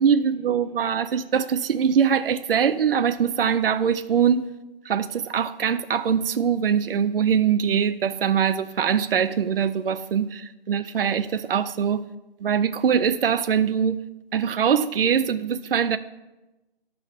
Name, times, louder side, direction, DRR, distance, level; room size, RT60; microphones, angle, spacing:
voice 1, 0.0-4.5 4.9-12.0 12.4-14.0 14.3-16.0, right 7 dB, 65° right, 0.5 m, -22 dB
11.0 x 6.3 x 5.5 m
hypercardioid pair, 165°, 30 cm